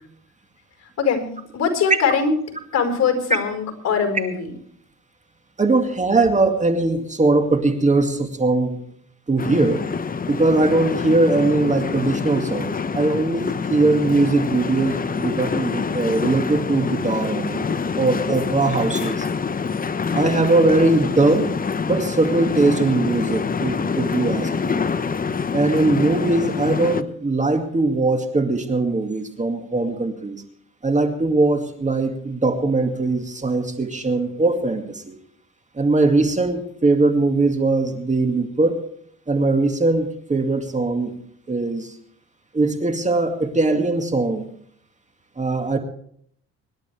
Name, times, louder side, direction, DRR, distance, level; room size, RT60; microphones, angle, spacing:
voice 1, 1.0-2.4 2.7-4.5, left 5 dB, 60° left, 5 dB, 4.8 m, -22 dB
voice 2, 5.6-8.8 9.3-9.9 10.3-17.7 18.0-19.3 20.1-21.5 21.9-24.7 25.5-30.4 30.8-35.1 35.8-38.8 39.3-41.1 41.5-41.9 42.5-44.5 45.4-45.8, right 2 dB, 25° right, 5 dB, 2.2 m, -20 dB
sound 1, 9.4-27.0, left 5 dB, 30° left, 0.9 m, -26 dB
25.5 x 11.5 x 3.4 m, 0.64 s
cardioid pair, 90°, 30 cm